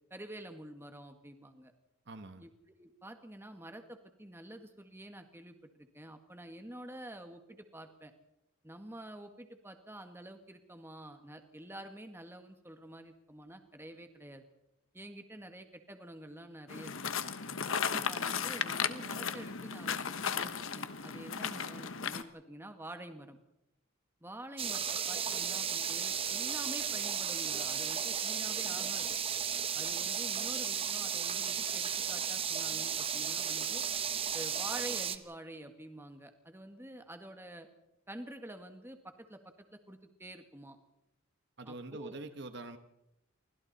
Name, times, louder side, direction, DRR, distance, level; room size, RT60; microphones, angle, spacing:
voice 1, 0.1-1.7 2.4-2.5 2.8-8.1 8.6-14.4 14.9-17.0 17.7-23.4 24.2-29.2 29.7-33.9 34.3-37.7 38.1-40.8 41.7-42.3, right 1 dB, 10° right, 6 dB, 1.8 m, -48 dB
voice 2, 2.1-2.4 41.6-42.8, right 2 dB, 55° right, 8 dB, 1.3 m, -44 dB
sound 1, 16.7-22.2, left 6 dB, 75° left, 1.2 m, -35 dB
sound 2, 24.6-35.2, right 8 dB, 25° right, 1.0 m, -34 dB
28.5 x 24.5 x 4.2 m, 0.85 s
head